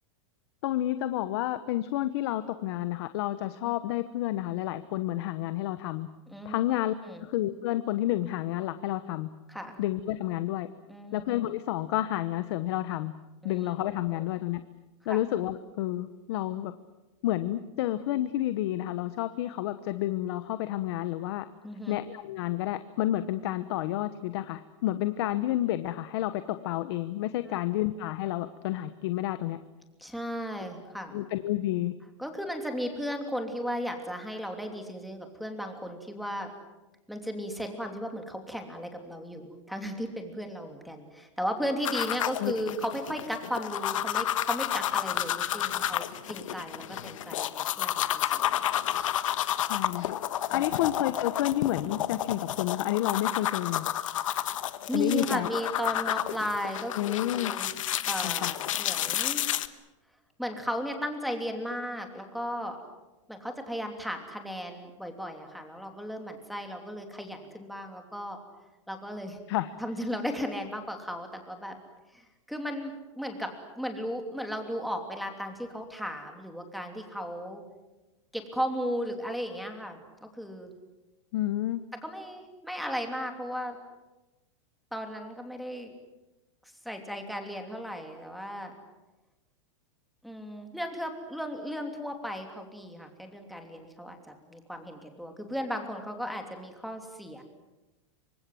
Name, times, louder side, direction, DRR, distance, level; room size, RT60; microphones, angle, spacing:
voice 1, 0.6-6.1 6.4-6.9 7.2-9.3 9.8-10.7 11.1-13.1 13.4-14.6 15.1-16.7 17.2-21.5 21.9-29.6 31.1-31.9 42.4-42.5 49.6-50.2 50.5-53.9 54.9-55.5 56.9-57.5 58.2-58.5 69.5-69.7 81.3-81.8, left 14 dB, 55° left, 12 dB, 1.1 m, -30 dB
voice 2, 6.3-6.6 7.0-7.3 9.5-9.8 10.9-11.2 13.4-13.7 14.0-14.2 15.1-15.2 21.6-22.0 27.5-27.6 30.0-31.1 32.2-36.5 37.1-48.6 50.5-50.6 54.9-57.7 58.1-59.5 60.4-62.8 63.3-68.4 68.9-69.4 69.8-71.7 72.1-73.5 73.8-77.6 78.3-80.7 82.0-83.8 84.9-85.9 86.8-88.7 90.2-97.4, equal, ahead, 3 dB, 3.0 m, -35 dB
sound 1, 41.8-59.7, left 12 dB, 85° left, 1.4 m, -31 dB
26.5 x 25.0 x 7.8 m, 1.1 s
supercardioid pair, 160°, 16 cm